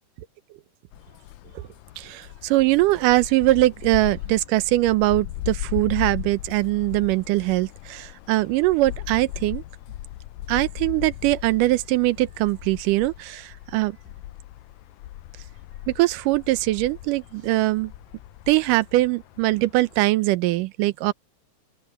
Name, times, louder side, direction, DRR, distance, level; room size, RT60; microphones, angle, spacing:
sound 1, 0.9-20.0, left 14 dB, 85° left, 1.6 m, -38 dB
voice 1, 2.0-9.6 10.5-14.0 15.9-17.9 18.5-21.1, right 18 dB, 80° right, 2.3 m, -22 dB
open air
omnidirectional pair, 3.9 m